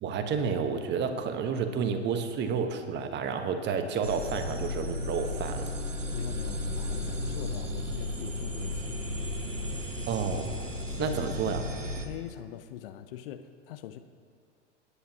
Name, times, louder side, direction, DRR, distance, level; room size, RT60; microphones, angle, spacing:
voice 1, 0.0-5.7 10.1-10.5 11.0-11.7, right 6 dB, 30° right, 7 dB, 1.3 m, -30 dB
sound 1, 4.0-12.1, left 1 dB, 85° right, 1.4 m, -34 dB
voice 2, 6.1-9.0 10.9-11.2 12.1-14.0, left 11 dB, 50° left, 10 dB, 0.8 m, -42 dB
28.5 x 10.0 x 2.9 m, 2.1 s
figure-of-eight pair, 90°, 36 cm